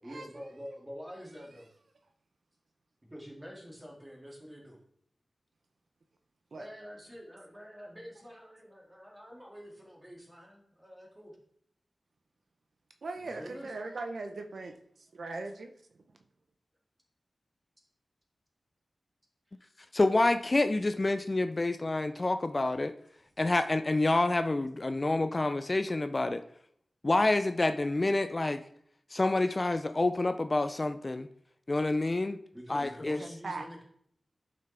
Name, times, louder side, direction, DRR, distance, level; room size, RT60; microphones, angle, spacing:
voice 1, 0.0-1.7 3.1-4.8 6.5-11.4 13.1-13.7 19.6-19.7 23.2-23.3 32.5-33.8, equal, 15° right, -2 dB, 2.2 m, -47 dB
voice 2, 13.0-14.8 15.1-15.7 33.2-33.7, right 3 dB, 70° right, 6 dB, 0.7 m, -39 dB
voice 3, 19.9-22.9 23.4-26.4 27.0-28.6 29.1-31.3 31.7-32.4 32.7-33.2, left 2 dB, 30° left, 9 dB, 0.3 m, -28 dB
10.5 x 5.8 x 3.3 m, 0.67 s
wide cardioid pair, 110°, 0 cm